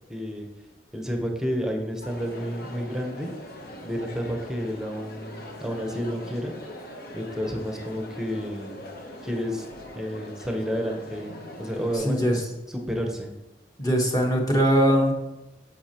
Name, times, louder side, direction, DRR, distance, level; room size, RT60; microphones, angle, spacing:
voice 1, 0.1-0.5 0.9-3.3 3.8-6.6 7.1-8.8 9.2-9.7 9.9-13.3, equal, 5° right, 2 dB, 0.9 m, -30 dB
Crowd, 2.0-12.0, left 1 dB, 55° left, 1.0 m, -42 dB
voice 2, 11.9-12.4 13.8-15.1, equal, 20° left, 0 dB, 1.2 m, -21 dB
8.2 x 6.7 x 2.9 m, 0.97 s
head